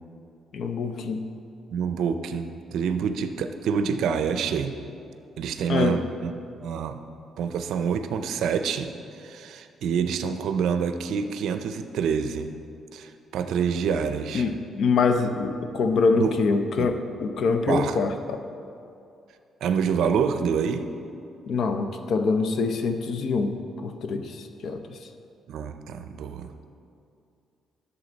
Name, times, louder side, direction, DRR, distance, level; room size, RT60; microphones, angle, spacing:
voice 1, 0.5-1.3 5.7-6.0 14.3-18.4 21.5-25.1, left 4 dB, 60° left, 7 dB, 0.6 m, -25 dB
voice 2, 1.7-4.8 5.4-6.3 6.6-7.0 7.4-12.5 12.9-14.5 16.2-16.3 17.7-18.0 19.6-20.9 25.5-26.5, right 6 dB, 80° right, 8 dB, 0.5 m, -27 dB
11.5 x 7.1 x 4.0 m, 2.6 s
cardioid pair, 125°, 0 cm